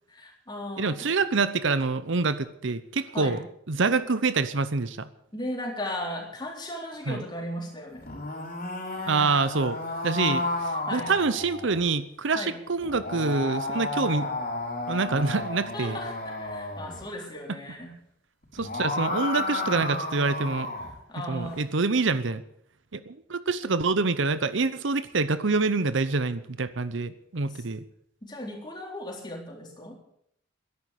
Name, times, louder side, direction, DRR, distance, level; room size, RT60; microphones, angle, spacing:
voice 1, 0.1-1.0 3.1-3.4 5.3-8.1 10.9-11.1 12.3-12.6 15.7-18.0 21.1-21.6 27.5-27.6 28.2-29.9, left 1 dB, 20° left, 0 dB, 3.8 m, -36 dB
voice 2, 0.8-3.4 3.7-5.1 7.1-7.2 9.1-9.8 10.0-14.3 14.9-16.0 18.5-20.7 21.3-22.4 22.9-27.8, right 4 dB, 65° right, 14 dB, 0.8 m, -26 dB
sound 1, 7.9-11.8 12.8-17.0 18.4-20.9, left 2 dB, 45° left, 5.6 m, -32 dB
13.0 x 11.0 x 8.4 m, 0.72 s
head